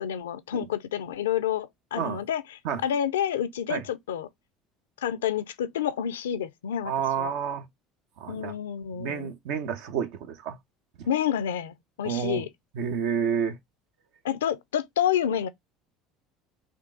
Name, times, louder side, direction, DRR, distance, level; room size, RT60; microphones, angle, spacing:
voice 1, 0.0-4.3 5.0-6.9 7.2-7.3 8.3-9.3 11.1-12.5 14.2-15.5, left 9 dB, 85° left, 0.4 m, -29 dB
voice 2, 6.8-7.7 8.2-8.5 9.0-10.6 11.0-11.1 12.0-12.4 12.7-13.6, right 7 dB, 70° right, 0.7 m, -29 dB
3.5 x 2.5 x 3.7 m
hypercardioid pair, 70°, 0 cm